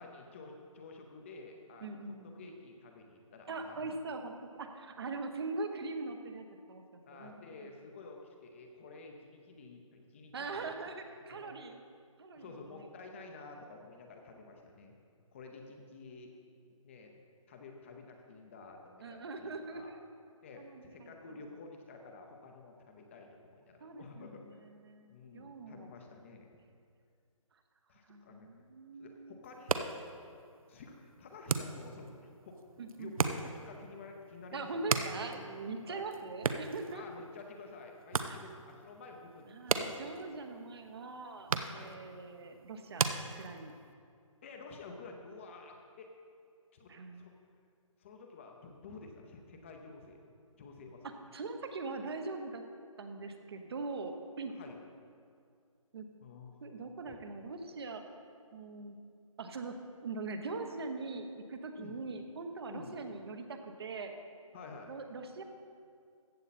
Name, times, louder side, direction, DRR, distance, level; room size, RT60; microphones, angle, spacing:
voice 1, 0.0-1.9 2.2-4.0 7.1-10.7 11.2-11.6 12.3-14.9 15.3-16.3 16.7-17.1 17.5-19.9 20.4-24.6 25.1-26.5 27.9-28.5 29.0-29.8 30.7-32.6 33.0-34.8 35.8-36.0 36.9-40.0 41.7-42.0 44.4-46.1 46.7-47.3 48.0-51.1 54.5-54.8 56.2-56.6 57.0-57.2 61.8-62.0 62.7-63.0 64.5-64.9, left 3 dB, 20° left, 3 dB, 0.7 m, -51 dB
voice 2, 1.8-2.5 3.5-7.3 7.6-7.7 10.3-11.8 12.2-12.8 19.0-20.0 20.6-21.1 23.8-24.4 24.8-25.9 28.1-29.4 32.8-33.1 34.5-37.0 38.3-38.4 39.5-43.8 46.9-47.3 51.3-52.6 53.0-54.5 55.9-56.1 56.6-58.0 58.5-59.0 59.4-59.8 60.0-64.1 64.9-65.4, right 3 dB, 45° right, 6 dB, 1.0 m, -42 dB
sound 1, 29.4-43.9, right 4 dB, 85° right, 0.8 m, -38 dB
14.5 x 8.1 x 4.2 m, 2.3 s
hypercardioid pair, 165°, 17 cm